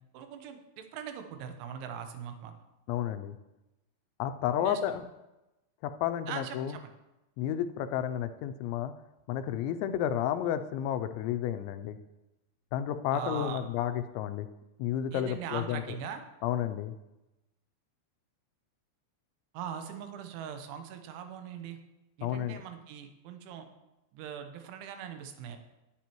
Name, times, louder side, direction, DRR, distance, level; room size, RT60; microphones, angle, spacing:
voice 1, 0.1-2.5 4.6-5.0 6.3-6.9 13.1-13.6 15.1-16.2 19.5-21.8 22.2-23.7 24.1-25.6, right 8 dB, 85° right, 6 dB, 3.3 m, -41 dB
voice 2, 2.9-3.4 4.2-5.0 5.8-6.8 7.4-8.9 9.3-12.0 12.7-14.5 14.8-16.0 16.4-16.9 22.2-22.6, left 10 dB, 85° left, 10 dB, 2.8 m, -31 dB
18.5 x 7.5 x 3.0 m, 0.98 s
omnidirectional pair, 5.4 m